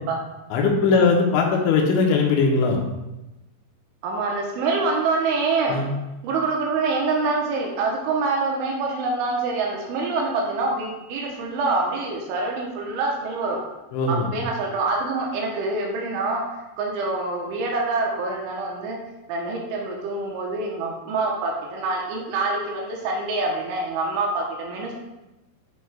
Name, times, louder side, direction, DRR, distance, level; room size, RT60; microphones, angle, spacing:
voice 1, 0.5-2.8 5.7-5.9 13.9-14.3, left 4 dB, 90° left, 0 dB, 3.4 m, -20 dB
voice 2, 4.0-5.8 6.2-13.6 14.1-16.4 16.8-19.0 19.3-24.9, right 3 dB, 85° right, -1 dB, 3.2 m, -25 dB
10.5 x 4.7 x 2.3 m, 0.99 s
omnidirectional pair, 5.4 m